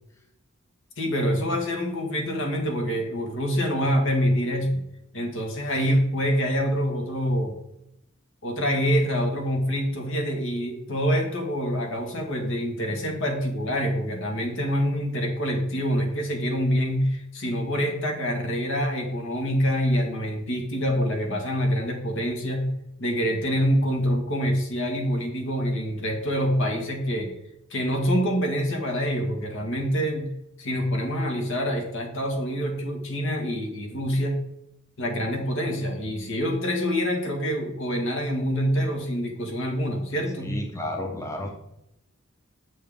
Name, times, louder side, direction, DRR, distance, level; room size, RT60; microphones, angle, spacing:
voice 1, 1.0-4.8 5.1-7.6 8.4-22.7 23.0-27.3 27.7-30.3 30.6-34.4 35.0-40.5, equal, 65° left, 2 dB, 1.8 m, -26 dB
voice 2, 40.5-41.5, left 1 dB, 15° left, 2 dB, 0.9 m, -31 dB
7.8 x 6.3 x 3.6 m, 0.83 s
head